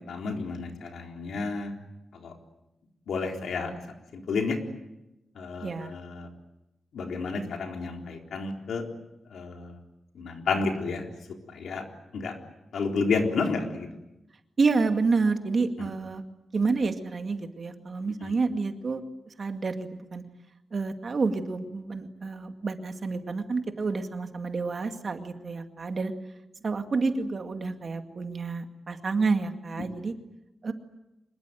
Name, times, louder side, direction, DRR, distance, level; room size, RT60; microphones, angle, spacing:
voice 1, 0.0-1.7 2.1-2.3 3.1-3.7 4.1-4.6 5.4-6.3 6.9-8.9 9.3-9.8 10.1-11.1 11.5-11.9 12.1-12.4 12.7-13.9 15.8-15.9 18.2-18.3, left 4 dB, 85° left, 3 dB, 4.0 m, -31 dB
voice 2, 5.6-5.9 14.6-16.2 16.5-19.0 19.4-20.2 20.7-26.1 26.6-30.1 30.6-30.7, right 4 dB, 40° right, 6 dB, 2.2 m, -29 dB
25.5 x 21.5 x 9.2 m, 0.93 s
wide cardioid pair, 140°, 0 cm